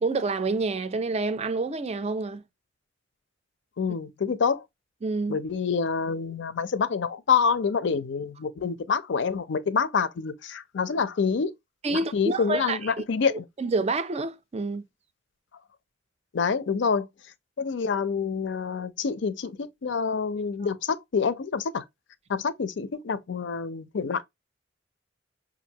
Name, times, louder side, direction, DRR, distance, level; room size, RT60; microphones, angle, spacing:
voice 1, 0.0-2.4 5.0-5.4 11.8-12.9 13.3-14.8, right 3 dB, 35° right, 0.4 m, -28 dB
voice 2, 3.8-4.6 5.3-11.5 11.9-13.4 16.3-17.1 17.6-21.8 22.3-24.2, left 5 dB, 70° left, 0.5 m, -27 dB
5.3 x 2.5 x 2.8 m
head